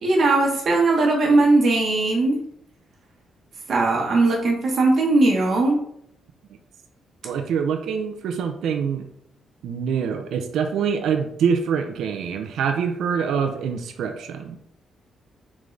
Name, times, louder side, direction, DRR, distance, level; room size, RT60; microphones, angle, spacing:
voice 1, 0.0-2.4 3.7-5.8, right 2 dB, 55° right, 0 dB, 0.9 m, -19 dB
voice 2, 7.2-9.1 9.6-14.6, right 6 dB, 80° right, 6 dB, 0.5 m, -25 dB
3.8 x 3.6 x 3.2 m, 0.70 s
cardioid pair, 110°, 0 cm